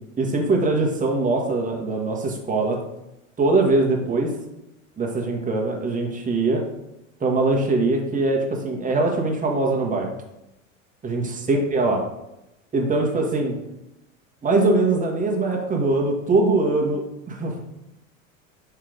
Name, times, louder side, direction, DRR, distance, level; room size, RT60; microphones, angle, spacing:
voice 1, 0.2-2.8 3.4-4.3 5.0-6.6 7.2-10.1 11.0-12.0 12.7-13.6 14.4-17.6, right 2 dB, 20° right, 0 dB, 1.7 m, -22 dB
5.9 x 4.7 x 5.1 m, 0.90 s
hypercardioid pair, 85°, 39 cm